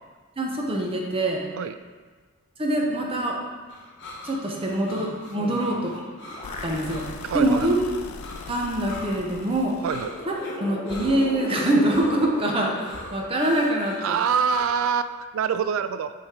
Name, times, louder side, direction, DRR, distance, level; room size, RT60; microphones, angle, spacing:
voice 1, 0.4-1.4 2.6-3.4 4.2-6.0 6.6-7.0 7.3-7.8 8.5-9.7 10.3-14.2, right 1 dB, 25° right, -1 dB, 0.7 m, -24 dB
sound 1, 3.7-15.0, left 2 dB, 60° left, 0.9 m, -43 dB
voice 2, 5.4-5.9 7.2-7.7 9.8-10.1 14.0-16.1, right 7 dB, 80° right, 11 dB, 0.3 m, -26 dB
sound 2, 5.8-7.3 7.8-7.9 9.2-14.0, left 2 dB, 30° left, 0.5 m, -38 dB
sound 3, 6.4-10.4, left 4 dB, 90° left, 0.4 m, -40 dB
8.0 x 3.3 x 3.6 m, 1.4 s
head